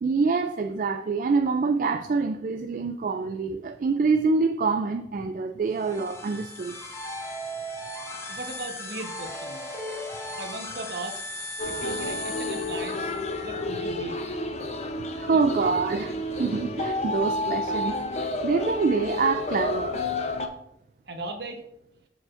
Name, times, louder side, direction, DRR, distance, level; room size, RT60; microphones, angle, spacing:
voice 1, 0.0-6.8 15.2-17.9 18.4-20.0, right 4 dB, 45° right, 6 dB, 0.3 m, -25 dB
sound 1, 5.7-13.3, left 1 dB, 15° left, 0.9 m, -37 dB
voice 2, 8.1-9.7 10.4-11.2 11.7-13.2 13.4-14.2 15.3-15.4 21.1-21.6, right 2 dB, 60° right, 5 dB, 1.0 m, -38 dB
sound 2, 11.6-20.5, left 2 dB, 35° left, 0.6 m, -30 dB
13.5 x 4.9 x 2.5 m, 0.78 s
head